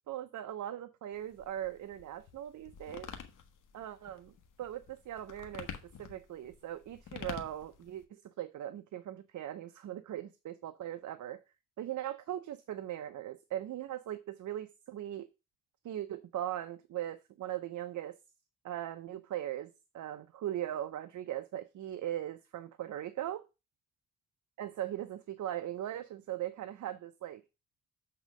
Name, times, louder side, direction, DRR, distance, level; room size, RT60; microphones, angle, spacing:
voice 1, 0.1-3.1 3.7-5.7 6.0-11.4 11.8-15.3 15.8-18.2 18.6-23.4 24.6-27.4, right 12 dB, 70° right, 0.6 m, -39 dB
sound 1, 1.1-8.0, left 7 dB, 80° left, 1.2 m, -48 dB
7.1 x 3.7 x 6.3 m
cardioid pair, 100°, 31 cm